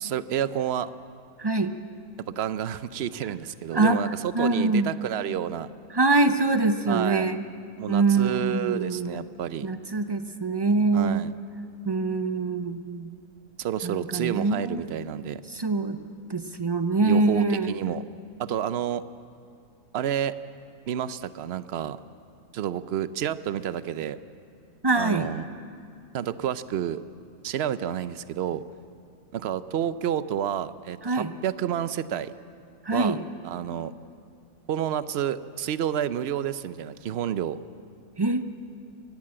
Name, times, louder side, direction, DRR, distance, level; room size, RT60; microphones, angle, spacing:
voice 1, 0.0-0.9 2.3-5.7 6.9-7.3 7.8-9.7 10.9-11.3 13.6-15.4 17.0-18.0 18.4-19.0 19.9-20.3 20.9-22.0 22.5-24.2 25.0-25.4 26.1-27.0 27.4-28.6 29.3-32.3 32.9-33.2 33.4-33.9 34.7-37.6, right 10 dB, 60° right, 14 dB, 0.7 m, -29 dB
voice 2, 1.4-1.7 3.7-4.0 4.3-4.9 5.9-7.4 7.9-9.2 9.6-11.3 11.8-13.1 13.8-14.8 15.5-16.0 16.3-17.7 24.8-25.3 31.0-31.3 32.8-33.2 38.2-38.5, right 3 dB, 40° right, 9 dB, 0.3 m, -24 dB
24.0 x 18.0 x 7.6 m, 2.4 s
omnidirectional pair, 1.5 m